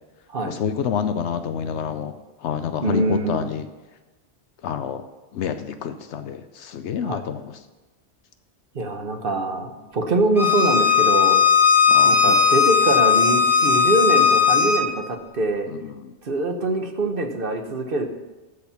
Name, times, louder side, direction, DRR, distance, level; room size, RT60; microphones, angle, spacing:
voice 1, 0.4-2.1 2.4-3.7 4.6-5.0 5.3-7.6 11.9-12.4 15.7-16.1, left 8 dB, 80° left, 9 dB, 0.9 m, -28 dB
voice 2, 2.8-3.5 7.0-7.2 8.7-9.7 9.9-11.4 12.0-15.7 16.2-18.1, right 2 dB, 55° right, 5 dB, 1.2 m, -24 dB
Bowed string instrument, 10.4-14.8, left 7 dB, ahead, 1.2 m, -17 dB
13.0 x 4.4 x 6.9 m, 1.2 s
omnidirectional pair, 1.2 m